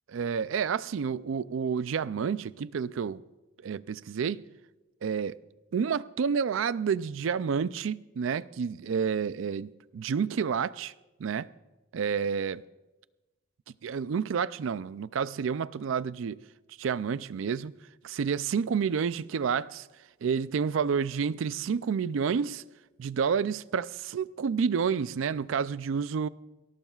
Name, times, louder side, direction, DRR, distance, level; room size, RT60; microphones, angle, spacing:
voice 1, 0.1-3.2 3.6-4.4 5.0-5.4 5.7-10.9 11.2-11.5 11.9-12.6 13.8-16.4 16.8-17.7 18.0-19.9 20.2-22.6 23.0-26.3, right 6 dB, 75° right, 0.4 m, -29 dB
22.0 x 17.5 x 2.4 m
head